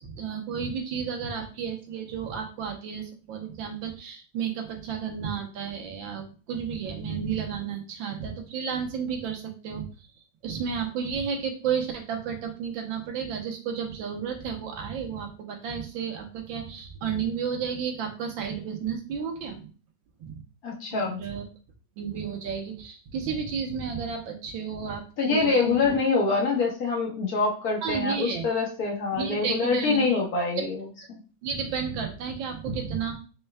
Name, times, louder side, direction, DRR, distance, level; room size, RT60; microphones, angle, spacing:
voice 1, 0.0-9.8 10.4-19.6 20.2-20.4 20.9-21.4 22.0-25.9 27.8-28.4 29.1-30.2 31.4-33.2, right 6 dB, 75° right, 3 dB, 1.6 m, -32 dB
voice 2, 20.6-21.2 25.2-30.8, left 4 dB, 50° left, -2 dB, 1.5 m, -25 dB
4.4 x 4.4 x 2.2 m, 0.36 s
omnidirectional pair, 2.2 m